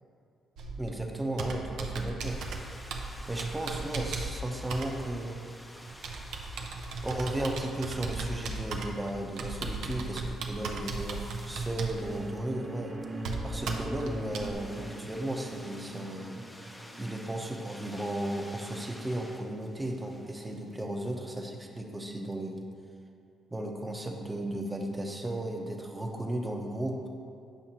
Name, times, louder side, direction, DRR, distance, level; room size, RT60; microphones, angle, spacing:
Computer keyboard, 0.6-14.5, right 3 dB, 80° right, 0.6 m, -37 dB
voice 1, 0.8-2.4 3.3-5.4 7.0-12.9 13.4-16.4 17.0-22.6 23.5-27.1, right 1 dB, 15° right, 2 dB, 0.8 m, -35 dB
sound 1, 2.2-21.1, left 1 dB, 10° left, 0.6 m, -51 dB
sound 2, 11.5-18.1, right 1 dB, 30° right, 1.2 m, -42 dB
9.1 x 5.6 x 2.9 m, 2.4 s
cardioid pair, 90°, 0 cm